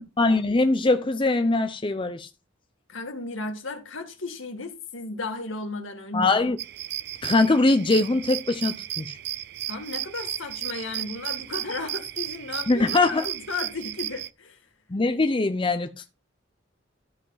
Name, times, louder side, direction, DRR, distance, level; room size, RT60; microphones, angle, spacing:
voice 1, 0.0-2.3 6.1-6.6 7.2-9.2 12.7-13.2 14.9-15.9, left 2 dB, 25° left, 0.6 m, -22 dB
voice 2, 2.9-6.3 9.7-14.6, left 3 dB, 75° left, 2.1 m, -34 dB
sound 1, 6.6-14.3, right 13 dB, 55° right, 0.4 m, -34 dB
13.0 x 5.3 x 4.0 m
head